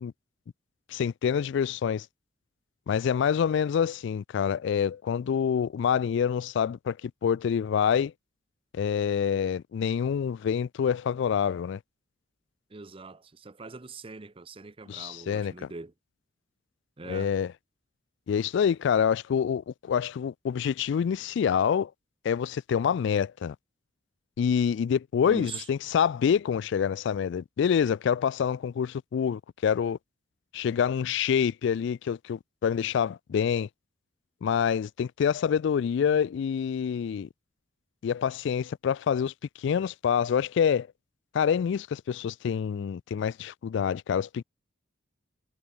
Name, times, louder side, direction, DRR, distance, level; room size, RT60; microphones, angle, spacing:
voice 1, 0.9-2.1 2.9-8.1 8.7-11.8 14.9-15.7 17.1-17.5 18.3-21.9 22.2-23.6 24.4-30.0 30.5-33.7 34.4-37.3 38.0-40.9 41.3-44.4, left 7 dB, 65° left, 0.3 m, -26 dB
voice 2, 12.7-15.9 17.0-17.3 25.3-25.6, right 3 dB, 30° right, 0.7 m, -42 dB
head